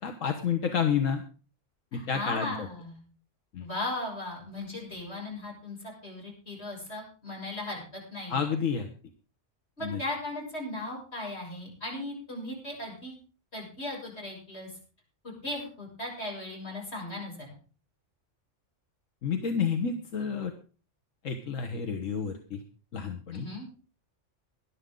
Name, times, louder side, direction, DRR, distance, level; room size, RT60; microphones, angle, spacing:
voice 1, 0.0-1.2 1.9-2.5 3.5-3.7 8.3-8.9 9.8-10.0 19.2-20.5 21.2-22.6 22.9-23.5, left 6 dB, 90° left, 5 dB, 1.6 m, -30 dB
voice 2, 1.9-3.0 3.6-8.5 9.8-13.2 13.5-14.7 15.2-17.6 23.3-23.7, left 1 dB, 55° left, -2 dB, 7.3 m, -37 dB
19.5 x 11.5 x 3.8 m, 0.38 s
omnidirectional pair, 1.3 m